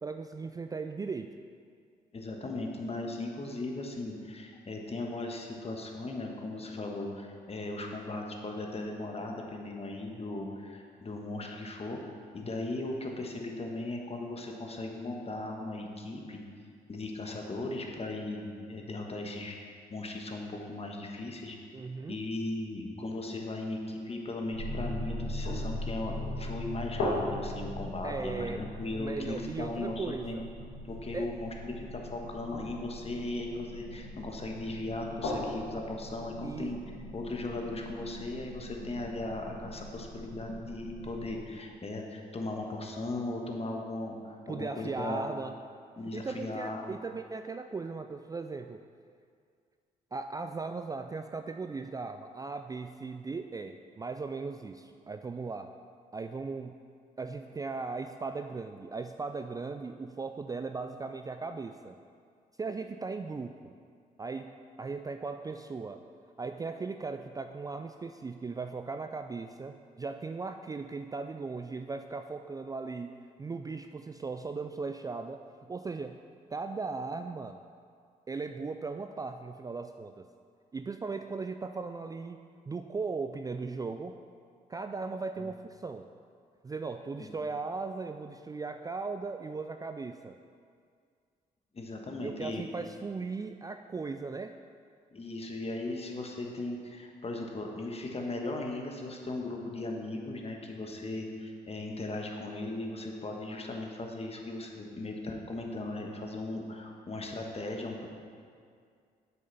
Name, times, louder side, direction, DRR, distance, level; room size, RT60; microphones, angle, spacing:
voice 1, 0.0-1.3 21.7-22.2 28.0-28.6 29.0-30.4 31.1-31.3 36.4-36.7 44.5-45.6 46.1-48.8 50.1-55.7 56.1-56.8 57.2-62.0 62.6-63.7 64.2-64.5 64.8-66.0 66.4-73.1 73.4-76.2 76.5-77.6 78.3-80.3 80.7-82.4 82.7-84.1 84.7-86.1 86.6-90.4 92.2-94.5, right 4 dB, 20° right, 7 dB, 0.3 m, -38 dB
voice 2, 2.1-16.4 16.9-19.5 19.9-21.6 22.1-30.4 30.8-36.8 37.1-45.2 45.9-46.9 85.4-85.5 87.2-87.3 91.7-92.6 95.1-108.1, left 2 dB, 35° left, 1 dB, 1.3 m, -37 dB
sound 1, 24.5-41.4, left 1 dB, 75° left, 1.8 m, -39 dB
7.7 x 6.5 x 4.1 m, 2.2 s
supercardioid pair, 55°, 18 cm